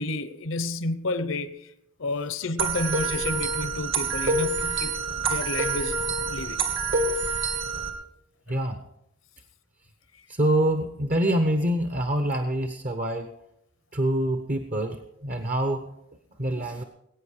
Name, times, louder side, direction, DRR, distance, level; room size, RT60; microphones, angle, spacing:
voice 1, 0.0-1.5 2.0-6.0 6.2-6.6, left 2 dB, 65° left, 0.9 m, -30 dB
sound 1, 2.6-7.9, right 4 dB, 65° right, 2.1 m, -27 dB
voice 2, 8.5-8.8 10.3-13.3 13.9-15.9 16.4-16.8, right 1 dB, 40° right, 0.9 m, -25 dB
20.5 x 8.9 x 4.9 m
head